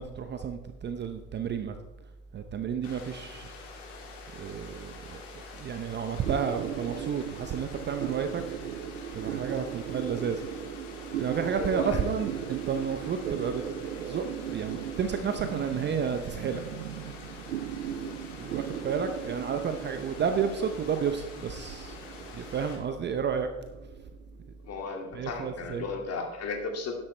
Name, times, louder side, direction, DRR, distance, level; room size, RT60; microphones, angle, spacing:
voice 1, 0.0-1.7 2.3-3.5 4.3-5.2 5.5-8.4 9.1-10.4 11.2-13.6 14.0-16.6 18.4-23.5 25.1-25.9, right 7 dB, 25° right, 8 dB, 0.7 m, -31 dB
Water, 2.8-22.8, left 5 dB, 60° left, 3.4 m, -47 dB
sound 1, 6.2-25.0, right 10 dB, 80° right, 0.9 m, -38 dB
voice 2, 11.5-12.0 18.0-18.1 24.6-26.9, left 4 dB, 35° left, 3 dB, 2.4 m, -35 dB
11.5 x 11.0 x 3.3 m, 1.1 s
hypercardioid pair, 95°, 44 cm